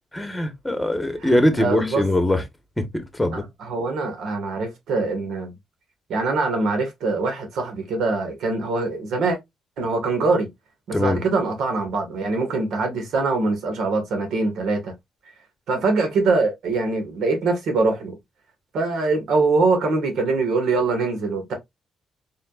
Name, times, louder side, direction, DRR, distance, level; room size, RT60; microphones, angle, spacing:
voice 1, 0.1-2.4 2.8-3.4 10.9-11.2, left 1 dB, 10° left, 1.2 m, -22 dB
voice 2, 1.2-2.0 3.3-5.5 6.1-9.4 9.8-10.5 10.9-14.9 15.7-18.2 18.7-21.5, right 3 dB, 75° right, 1.6 m, -23 dB
4.3 x 3.7 x 2.4 m
cardioid pair, 90°, 0 cm